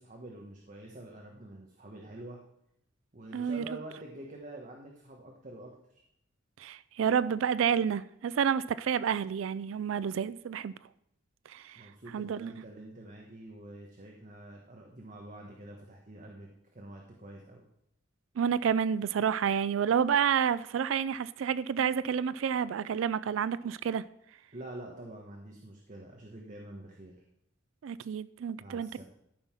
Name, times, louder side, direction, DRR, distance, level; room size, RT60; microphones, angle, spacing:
voice 1, 0.0-2.4 3.1-6.0 11.7-17.6 24.5-27.1 28.6-29.0, right 1 dB, 40° right, 1.3 m, -47 dB
voice 2, 3.3-3.6 6.6-10.7 11.5-11.8 12.1-12.5 18.4-24.0 27.8-29.0, right 7 dB, 85° right, 0.4 m, -29 dB
13.5 x 5.6 x 6.0 m
head